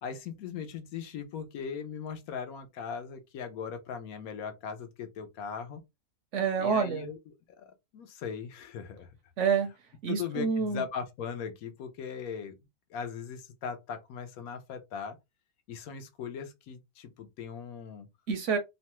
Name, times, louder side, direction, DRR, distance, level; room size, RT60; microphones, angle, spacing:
voice 1, 0.0-5.8 6.6-7.2 7.6-9.2 10.1-12.6 12.9-15.2 15.7-18.1, left 7 dB, 75° left, 1.1 m, -39 dB
voice 2, 6.3-7.1 9.4-10.8 18.3-18.6, right 6 dB, 65° right, 0.8 m, -28 dB
3.0 x 2.2 x 2.8 m
omnidirectional pair, 1.6 m